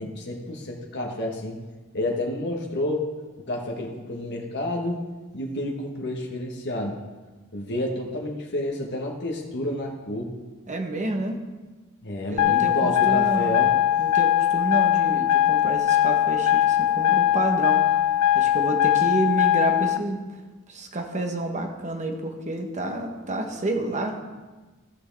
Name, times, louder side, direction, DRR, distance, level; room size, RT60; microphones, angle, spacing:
voice 1, 0.0-1.6 1.9-3.1 3.5-5.0 5.3-7.0 7.5-10.3 12.0-13.7, left 1 dB, 55° left, 0 dB, 1.2 m, -30 dB
voice 2, 10.7-11.4 12.3-13.6 14.0-17.8 18.3-20.2 20.7-24.2, right 2 dB, 35° right, 4 dB, 1.1 m, -29 dB
sound 1, 12.4-20.0, left 11 dB, 85° left, 0.4 m, -21 dB
15.0 x 6.2 x 3.4 m, 1.2 s
head